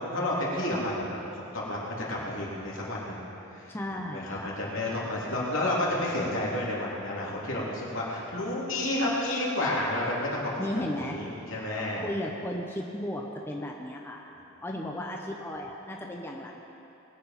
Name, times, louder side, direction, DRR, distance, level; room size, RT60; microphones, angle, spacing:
voice 1, 0.0-3.1 4.1-10.7 11.1-12.0, left 1 dB, 65° left, -5 dB, 3.1 m, -30 dB
voice 2, 3.7-4.6 10.6-11.2 12.0-14.3 14.6-16.6, left 1 dB, 10° left, -1 dB, 0.8 m, -35 dB
20.5 x 8.4 x 5.9 m, 2.9 s
head